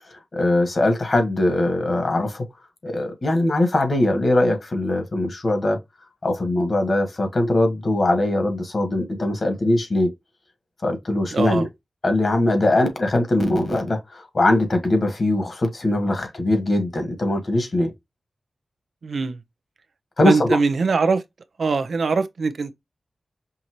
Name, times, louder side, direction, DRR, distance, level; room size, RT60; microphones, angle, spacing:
voice 1, 0.3-2.4 2.8-5.8 6.2-10.1 10.8-11.7 12.0-17.9 20.2-20.6, left 1 dB, 50° left, 1.6 m, -21 dB
voice 2, 11.3-11.7 19.0-19.4 20.2-21.2 21.6-22.7, right 4 dB, 75° right, 0.6 m, -22 dB
5.6 x 2.6 x 3.0 m
wide cardioid pair, 90°, 0 cm